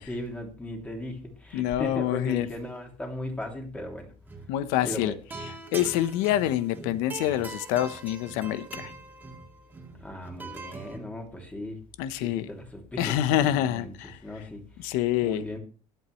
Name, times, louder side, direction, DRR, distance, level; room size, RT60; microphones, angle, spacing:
voice 1, 0.0-4.1 4.8-5.1 10.0-11.8 12.2-15.0 15.2-15.6, left 1 dB, 10° left, 2.5 m, -37 dB
voice 2, 1.5-2.5 4.5-5.1 5.7-8.9 12.0-12.5 13.0-14.2 14.8-15.4, left 12 dB, 85° left, 1.0 m, -26 dB
sound 1, 4.2-4.5 4.8-11.0, right 3 dB, 15° right, 2.1 m, -42 dB
21.5 x 8.0 x 3.2 m
cardioid pair, 145°, 14 cm